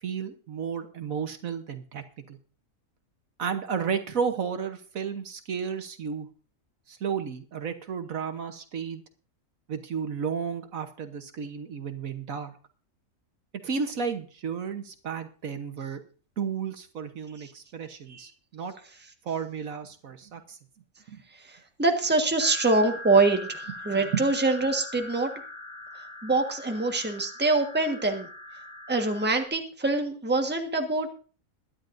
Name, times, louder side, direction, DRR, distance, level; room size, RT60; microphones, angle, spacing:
voice 1, 0.0-2.4 3.4-6.3 6.9-9.0 9.7-12.6 13.6-16.0 16.4-18.7 19.2-20.6 21.1-21.2 23.9-24.2, right 6 dB, 65° right, 7 dB, 1.5 m, -33 dB
voice 2, 21.5-25.3 26.2-28.3 28.9-31.1, right 3 dB, 5° right, 4 dB, 1.3 m, -25 dB
sound 1, 22.4-29.4, left 1 dB, 15° left, 3.0 m, -42 dB
22.0 x 11.0 x 2.6 m, 0.38 s
omnidirectional pair, 1.6 m